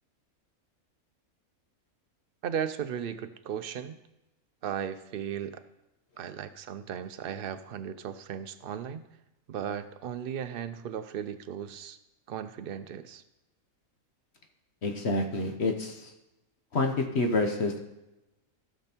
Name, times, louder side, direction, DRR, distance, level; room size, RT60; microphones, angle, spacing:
voice 1, 2.4-4.0 4.6-5.6 6.2-9.1 9.5-12.0 12.3-13.2, right 8 dB, 55° right, 11 dB, 0.6 m, -36 dB
voice 2, 14.8-16.1 16.7-17.8, left 2 dB, 55° left, 4 dB, 1.2 m, -28 dB
15.5 x 6.1 x 4.4 m, 0.97 s
omnidirectional pair, 1.5 m